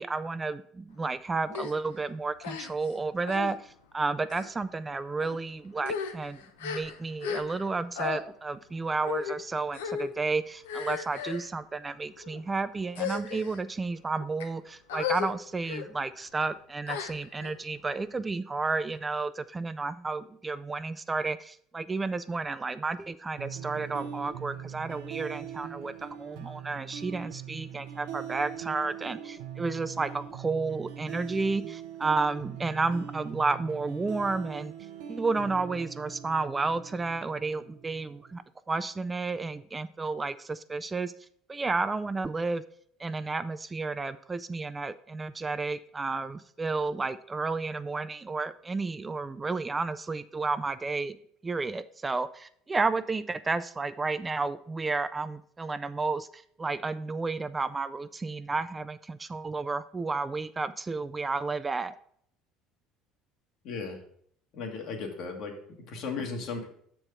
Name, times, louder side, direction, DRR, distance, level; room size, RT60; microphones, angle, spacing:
voice 1, 0.0-34.7 35.1-38.4 38.7-41.1 41.5-42.6 43.0-51.2 51.4-61.9, right 3 dB, 20° right, 13 dB, 0.4 m, -32 dB
sound 1, 1.5-1.7 2.4-2.9 3.3-3.5 4.2-4.5 5.2-5.4 5.8-7.7 8.0-8.2 9.0-9.4 9.7-10.1 10.6-11.5 12.2-12.4 12.9-13.6 14.2-14.5 14.9-15.3 15.6-15.9 16.9-17.5, left 7 dB, 90° left, 0.6 m, -35 dB
sound 2, 23.4-38.4, right 9 dB, 75° right, 0.7 m, -42 dB
voice 2, 63.6-64.0 64.5-66.7, left 4 dB, 65° left, 2 dB, 1.5 m, -36 dB
6.5 x 4.6 x 5.5 m, 0.64 s
hypercardioid pair, 80°, 0 cm